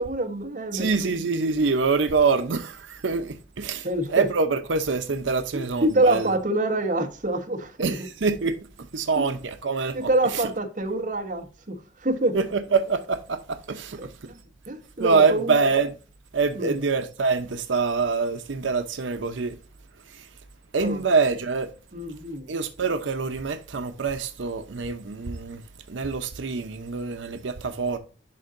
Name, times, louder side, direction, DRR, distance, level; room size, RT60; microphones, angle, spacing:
voice 1, 0.0-1.2 3.8-4.2 5.5-8.0 9.2-9.3 9.9-12.4 14.0-14.3 14.7-15.5 16.5-16.8 20.8-21.0 21.9-22.5, right 2 dB, 45° right, 1.1 m, -26 dB
voice 2, 0.7-6.3 7.8-8.6 8.9-10.5 12.3-14.3 15.0-16.0 16.3-19.6 20.1-20.3 20.7-21.7 22.5-28.0, right 4 dB, 90° right, 0.7 m, -25 dB
11.0 x 3.8 x 2.5 m
head